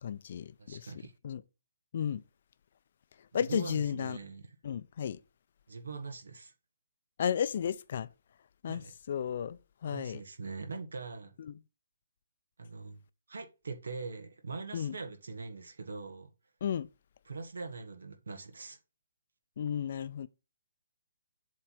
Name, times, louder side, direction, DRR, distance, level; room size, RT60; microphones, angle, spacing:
voice 1, 0.0-0.9 1.2-1.4 1.9-2.2 3.3-4.2 4.6-5.2 7.2-8.1 8.6-8.8 9.1-10.2 11.5-11.6 14.7-14.9 16.6-16.9 19.6-20.3, left 8 dB, 50° left, 0.5 m, -33 dB
voice 2, 0.6-1.1 3.3-4.6 5.7-6.5 8.7-8.9 9.9-11.3 12.6-13.0 13.3-16.3 17.2-18.8, right 4 dB, 70° right, 1.3 m, -42 dB
7.6 x 3.3 x 5.8 m
figure-of-eight pair, 135°, 0 cm